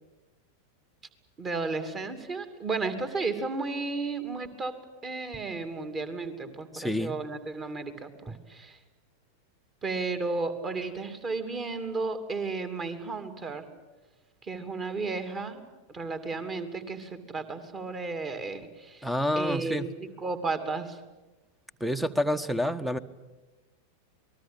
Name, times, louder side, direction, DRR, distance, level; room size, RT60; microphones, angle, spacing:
voice 1, 1.4-4.8 5.0-8.8 9.8-13.7 14.4-15.6 15.9-19.1 19.3-21.0, right 3 dB, 25° right, 9 dB, 2.8 m, -33 dB
voice 2, 6.7-7.2 8.3-8.4 19.0-19.9 21.8-23.0, equal, ahead, 15 dB, 1.1 m, -28 dB
27.5 x 20.5 x 8.9 m, 1.1 s
figure-of-eight pair, 90°, 0 cm